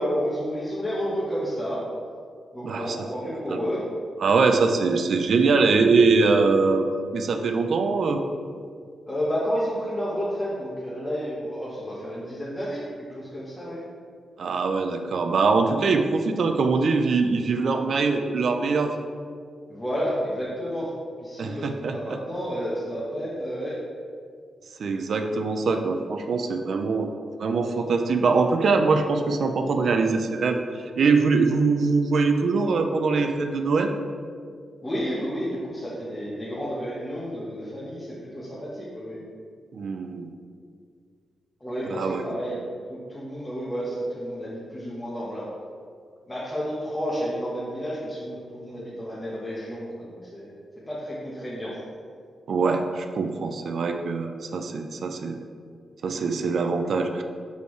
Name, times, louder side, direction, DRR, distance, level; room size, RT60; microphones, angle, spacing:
voice 1, 0.0-1.8 2.5-3.8 9.1-13.8 19.7-20.9 21.2-23.7 34.8-39.2 41.6-42.6 42.9-45.5 46.3-50.5 50.9-51.8, equal, 20° left, -8 dB, 1.2 m, -31 dB
voice 2, 2.6-3.0 3.5-3.6 4.2-6.9 7.1-8.2 14.4-19.0 21.4-22.2 24.8-30.6 31.0-33.9 39.7-40.3 41.9-42.2 52.5-55.4 56.0-57.2, right 4 dB, 65° right, 6 dB, 0.5 m, -23 dB
6.3 x 5.3 x 3.2 m, 2.1 s
cardioid pair, 90°, 0 cm